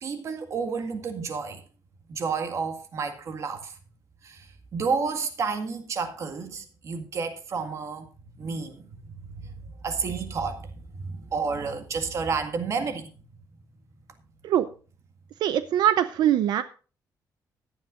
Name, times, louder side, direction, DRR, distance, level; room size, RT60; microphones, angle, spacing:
voice 1, 0.0-1.6 2.1-3.7 4.2-4.5 4.7-8.1 8.4-8.9 9.3-9.5 9.8-13.1, right 5 dB, 45° right, 1.9 m, -30 dB
voice 2, 15.4-16.6, right 11 dB, 75° right, 0.7 m, -22 dB
16.5 x 11.5 x 2.5 m
cardioid pair, 170°, 7 cm